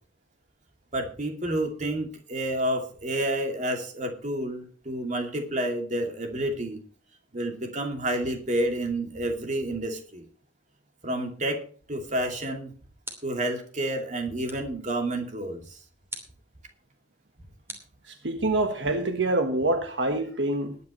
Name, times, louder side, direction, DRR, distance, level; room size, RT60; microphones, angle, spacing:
voice 1, 0.9-6.8 7.3-10.2 11.0-11.6 11.9-12.7 13.2-15.8, right 1 dB, 40° right, 2.7 m, -29 dB
sound 1, 13.0-13.6 14.5-14.8 16.1-16.5 17.7-18.6, right 1 dB, 15° right, 2.8 m, -43 dB
voice 2, 18.1-20.8, right 2 dB, 75° right, 1.4 m, -26 dB
20.5 x 9.5 x 3.2 m
head